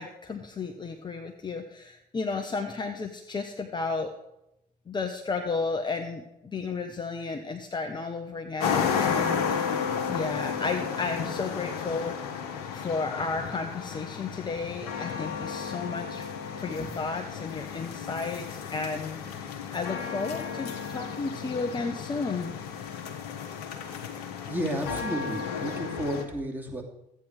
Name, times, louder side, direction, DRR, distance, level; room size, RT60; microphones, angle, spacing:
voice 1, 0.0-4.1 4.9-9.5 10.1-12.1 12.7-16.3 16.6-19.2 19.7-22.5, left 4 dB, 20° left, 4 dB, 1.0 m, -33 dB
sound 1, 8.6-26.3, left 7 dB, 65° left, 1.3 m, -33 dB
voice 2, 24.5-26.8, right 1 dB, 10° right, -1 dB, 2.6 m, -32 dB
13.0 x 8.8 x 4.7 m, 0.87 s
figure-of-eight pair, 55°, 20 cm